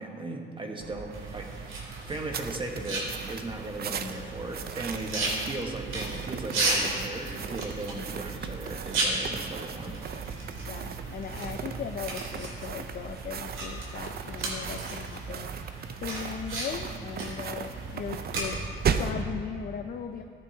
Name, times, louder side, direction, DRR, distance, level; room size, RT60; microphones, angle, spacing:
voice 1, 0.0-10.0, right 2 dB, 25° right, 2 dB, 1.3 m, -37 dB
sound 1, 0.8-19.2, right 6 dB, 50° right, 0.6 m, -37 dB
sound 2, 1.1-18.4, right 2 dB, 80° right, 2.6 m, -36 dB
voice 2, 10.7-18.6 18.9-20.2, left 7 dB, 50° left, 6 dB, 0.5 m, -38 dB
14.0 x 9.0 x 2.8 m, 2.4 s
cardioid pair, 90°, 20 cm